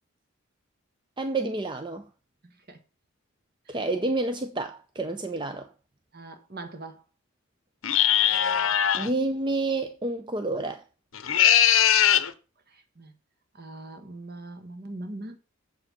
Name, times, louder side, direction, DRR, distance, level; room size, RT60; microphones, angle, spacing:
voice 1, 1.2-2.1 3.7-5.7 8.9-10.8, right 2 dB, 20° right, 0.6 m, -29 dB
voice 2, 2.4-2.8 3.7-3.8 6.1-7.0 12.7-13.1 13.6-15.4, right 2 dB, 45° right, 1.4 m, -41 dB
sound 1, 7.8-9.1 11.1-12.3, left 10 dB, 70° left, 0.7 m, -20 dB
7.7 x 6.9 x 5.4 m
head